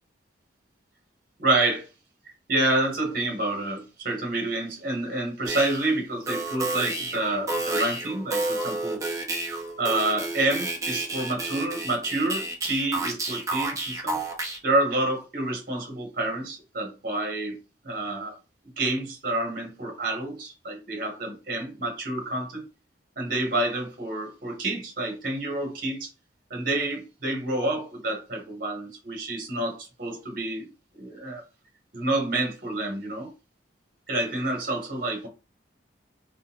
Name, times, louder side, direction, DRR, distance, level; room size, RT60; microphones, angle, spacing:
voice 1, 1.4-1.9 2.2-9.0 9.8-14.2 14.6-17.6 17.8-18.3 18.8-22.6 23.2-26.1 26.5-30.7 30.9-31.4 31.9-33.3 34.1-35.3, right 2 dB, 45° right, 1.2 m, -28 dB
sound 1, 5.4-5.9 6.3-14.6, right 2 dB, 15° right, 0.8 m, -30 dB
3.8 x 3.1 x 3.0 m
head